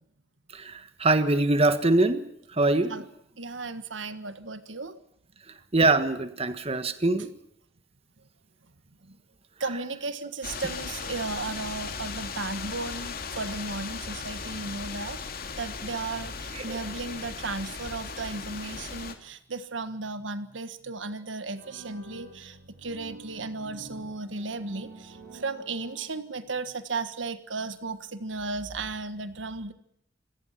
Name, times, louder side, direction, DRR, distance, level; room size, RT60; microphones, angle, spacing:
voice 1, 1.0-2.2 2.6-2.9 5.7-7.3 16.6-16.8, right 2 dB, 35° right, 10 dB, 1.6 m, -23 dB
voice 2, 3.4-5.0 9.6-15.2 15.6-29.7, right 3 dB, 85° right, 11 dB, 1.5 m, -35 dB
sound 1, 10.4-19.1, left 5 dB, 50° left, 2.7 m, -37 dB
sound 2, 21.6-26.5, right 2 dB, 60° right, 7.9 m, -48 dB
27.0 x 18.0 x 5.9 m, 0.77 s
head